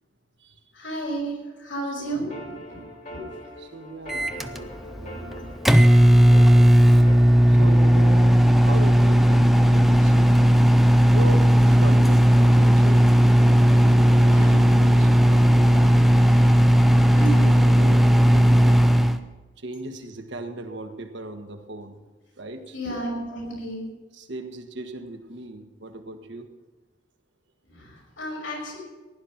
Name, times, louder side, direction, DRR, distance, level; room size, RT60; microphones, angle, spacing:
voice 1, 0.7-2.8 3.1-3.2 14.3-14.6 17.1-17.5 22.7-23.8 27.7-28.8, right 1 dB, 80° left, -2 dB, 5.8 m, -32 dB
sound 1, 2.1-7.1, equal, 40° left, 2.3 m, -42 dB
voice 2, 3.6-5.6 7.5-10.4 11.0-13.2 13.8-16.3 17.2-18.9 19.6-22.0 22.4-22.8 24.1-26.5, right 1 dB, 65° right, 6 dB, 1.4 m, -38 dB
Microwave oven, 4.1-19.2, equal, ahead, 0.5 m, -16 dB
15.5 x 11.0 x 5.9 m, 1.2 s
head